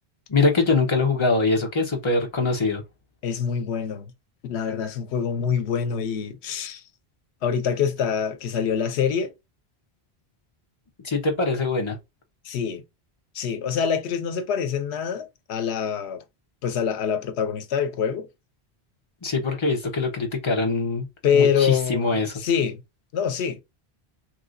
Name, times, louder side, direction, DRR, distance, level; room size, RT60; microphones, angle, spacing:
voice 1, 0.3-2.8 11.0-12.0 19.2-21.1 21.3-22.3, left 3 dB, 30° left, 0.8 m, -23 dB
voice 2, 3.2-4.1 4.4-6.8 7.4-9.3 12.4-12.8 13.3-16.2 16.6-18.3 21.2-22.8 23.1-23.6, left 7 dB, 90° left, 0.9 m, -25 dB
3.2 x 2.7 x 2.5 m
omnidirectional pair, 1.1 m